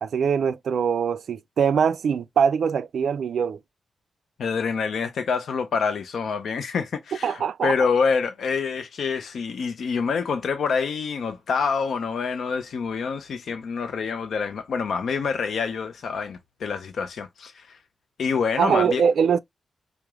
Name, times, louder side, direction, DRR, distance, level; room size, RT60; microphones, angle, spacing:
voice 1, 0.0-3.6 7.2-7.8 18.6-19.4, right 7 dB, 85° right, 0.3 m, -22 dB
voice 2, 4.4-17.8 18.2-19.0, left 5 dB, 80° left, 0.5 m, -26 dB
4.8 x 2.0 x 3.4 m
wide cardioid pair, 170°, 0 cm